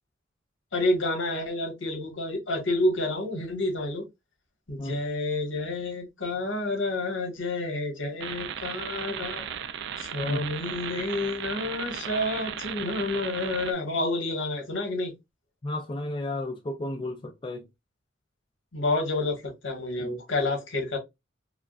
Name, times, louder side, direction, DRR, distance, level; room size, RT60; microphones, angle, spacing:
voice 1, 0.7-4.0 4.7-9.4 10.0-15.1 18.7-21.0, left 2 dB, 80° left, 1.6 m, -29 dB
sound 1, 8.2-13.7, right 8 dB, 60° right, 0.4 m, -36 dB
voice 2, 15.6-17.7, left 2 dB, 25° left, 0.4 m, -33 dB
4.8 x 2.3 x 2.4 m
head